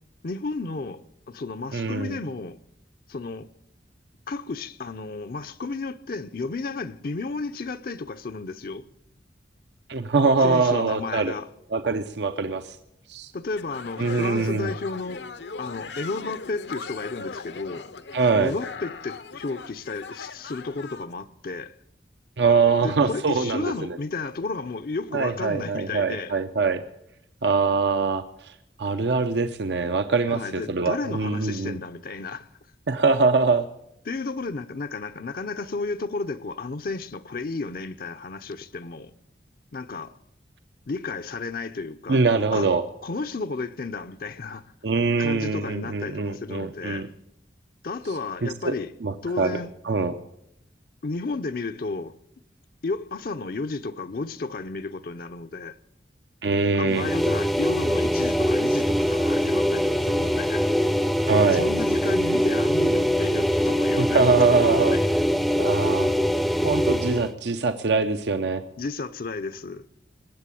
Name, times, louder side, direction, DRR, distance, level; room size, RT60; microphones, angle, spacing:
voice 1, 0.2-1.0 1.3-2.6 3.1-3.5 4.3-8.8 10.4-11.5 13.3-15.3 15.6-17.9 18.4-21.8 22.8-26.4 30.3-32.5 34.1-39.1 39.7-40.1 40.9-42.2 42.5-42.7 43.0-44.7 45.2-47.1 47.8-48.9 49.2-49.7 51.0-52.2 52.8-55.8 56.8-60.7 61.5-64.6 64.9-65.0 68.8-69.8, left 3 dB, 55° left, 0.6 m, -33 dB
voice 2, 1.7-2.2 9.9-11.3 11.7-12.8 13.1-13.3 14.0-14.7 18.1-18.5 22.4-24.0 25.1-26.8 27.4-31.8 32.9-33.7 42.1-42.8 44.8-47.1 48.4-48.7 49.0-49.5 49.8-50.1 56.4-57.1 61.3-61.7 64.0-65.0 65.6-66.1 66.6-68.6, right 4 dB, 75° right, 0.7 m, -23 dB
sound 1, 13.6-21.1, left 4 dB, 75° left, 0.9 m, -39 dB
sound 2, 56.9-67.3, equal, ahead, 0.5 m, -23 dB
20.5 x 8.3 x 8.4 m
head